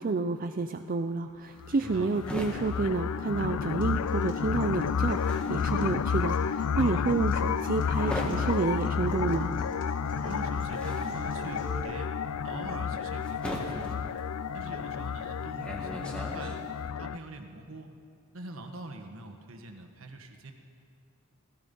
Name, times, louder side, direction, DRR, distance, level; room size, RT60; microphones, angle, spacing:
voice 1, 0.0-9.5, right 3 dB, 40° right, 7 dB, 0.5 m, -30 dB
sound 1, 1.4-16.9, equal, 5° left, 1.9 m, -41 dB
sound 2, 1.6-17.2, left 6 dB, 85° left, 0.4 m, -31 dB
voice 2, 1.8-2.2 6.8-7.1 10.2-12.1 12.4-14.1 14.5-16.6 17.0-17.9 18.3-20.5, right 2 dB, 65° right, 5 dB, 1.4 m, -43 dB
Acoustic guitar, 3.8-11.8, equal, 40° left, 3.1 m, -46 dB
16.0 x 15.5 x 5.4 m, 2.4 s
head